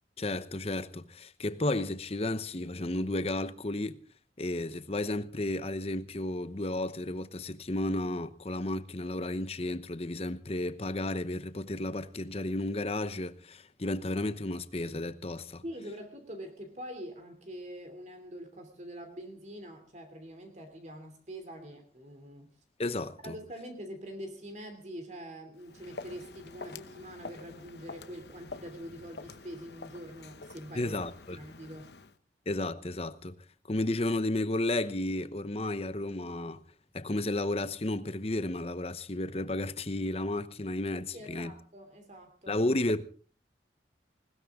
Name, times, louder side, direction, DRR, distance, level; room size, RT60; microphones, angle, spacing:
voice 1, 0.2-4.0 4.4-15.6 22.8-23.3 30.7-31.4 32.5-33.4 33.7-36.6 36.9-41.5 42.5-43.0, left 2 dB, 35° left, 0.9 m, -33 dB
voice 2, 15.6-22.5 23.2-31.0 31.3-31.9 41.1-42.5, equal, 40° right, 2.9 m, -44 dB
Walk footsteps, 25.6-32.2, left 3 dB, 65° left, 1.0 m, -47 dB
20.0 x 19.5 x 3.6 m
head